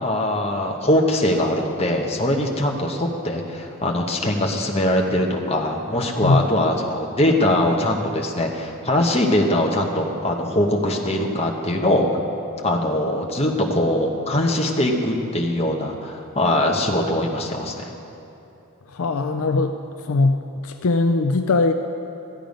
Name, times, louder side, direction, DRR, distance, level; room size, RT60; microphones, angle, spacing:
voice 1, 0.0-12.2 12.6-17.8, left 1 dB, 25° left, 1 dB, 1.1 m, -22 dB
voice 2, 18.9-19.7 20.1-20.4 20.6-21.7, left 3 dB, 65° left, 6 dB, 0.5 m, -20 dB
14.0 x 9.0 x 5.2 m, 3.0 s
head